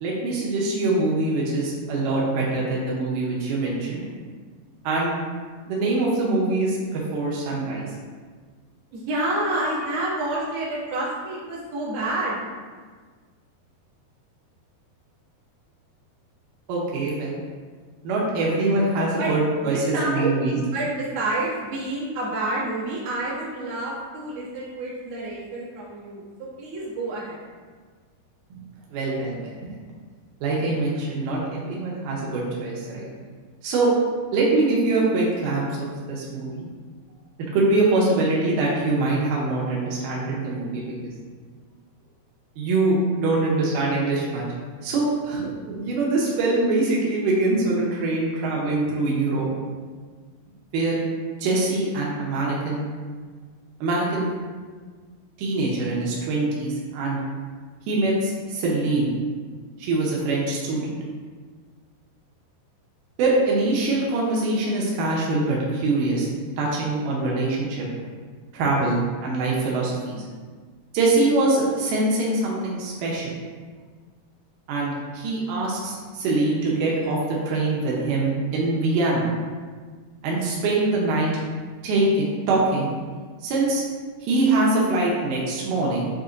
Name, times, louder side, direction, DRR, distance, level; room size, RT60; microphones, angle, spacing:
voice 1, 0.0-4.0 4.8-5.1 5.7-7.9 16.7-17.4 18.0-20.6 28.5-28.6 28.9-29.7 30.4-33.1 33.6-33.9 34.3-36.7 37.5-41.1 42.6-44.4 44.8-49.5 50.7-51.0 51.4-52.8 53.8-54.3 55.4-57.2 57.9-59.1 59.8-61.0 63.2-66.3 66.6-67.9 68.5-70.3 70.9-73.3 74.7-79.3 80.2-81.3 81.8-82.9 83.4-83.8 84.2-86.1, right 2 dB, 90° right, -4 dB, 1.8 m, -23 dB
voice 2, 8.9-12.4 19.2-19.3 19.6-27.4, right 2 dB, 65° right, -7 dB, 2.1 m, -28 dB
7.4 x 2.8 x 2.5 m, 1.5 s
omnidirectional pair, 4.5 m